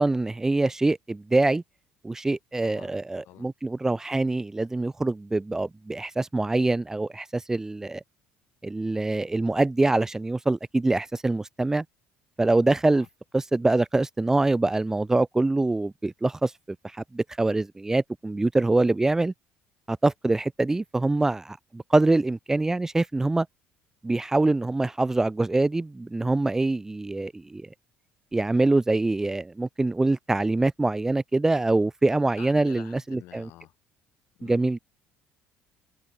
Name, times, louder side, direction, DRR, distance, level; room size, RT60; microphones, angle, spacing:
voice 1, 0.0-1.6 2.0-8.0 8.6-11.8 12.4-13.1 13.3-16.8 17.1-19.3 19.9-23.5 24.0-27.7 28.3-33.5 34.4-34.8, right 2 dB, 10° right, 0.9 m, -24 dB
voice 2, 2.6-2.9 3.2-3.5 12.8-13.1 32.4-33.7 34.4-34.6, left 16 dB, 70° left, 3.4 m, -47 dB
cardioid pair, 120°, 4 cm